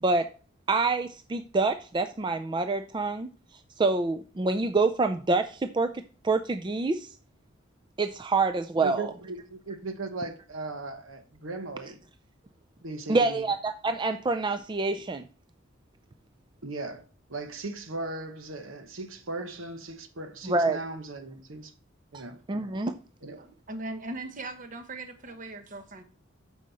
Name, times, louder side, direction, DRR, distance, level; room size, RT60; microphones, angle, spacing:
voice 1, 0.7-3.3 3.8-5.9 6.2-7.1 8.0-9.1 13.1-15.3 20.4-20.8 22.1-22.2 22.5-23.0, right 3 dB, 25° right, 0.4 m, -26 dB
voice 2, 8.8-12.0 12.8-13.4 16.6-17.0 17.3-21.7 22.1-22.4 23.2-23.4, right 2 dB, 75° right, 1.1 m, -37 dB
voice 3, 23.4-26.0, right 2 dB, 40° right, 1.1 m, -39 dB
9.1 x 6.4 x 4.1 m
head